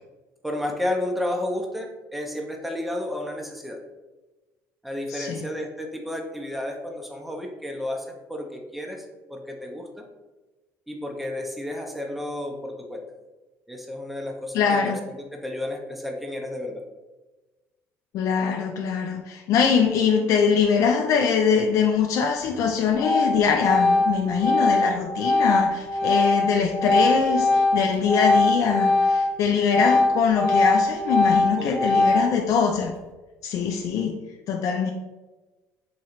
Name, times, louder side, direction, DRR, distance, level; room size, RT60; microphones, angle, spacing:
voice 1, 0.4-3.8 4.8-9.0 9.3-10.0 10.9-13.1 13.7-16.8 31.6-31.9, left 1 dB, ahead, 2 dB, 0.5 m, -32 dB
voice 2, 5.1-5.5 14.5-15.0 18.1-32.9 33.4-34.2 34.5-34.9, left 6 dB, 60° left, 3 dB, 0.3 m, -23 dB
Organ, 22.4-22.7 23.0-29.3 29.6-32.5, left 2 dB, 20° left, 0.8 m, -21 dB
3.7 x 3.1 x 2.9 m, 1.2 s
cardioid pair, 115°, 6 cm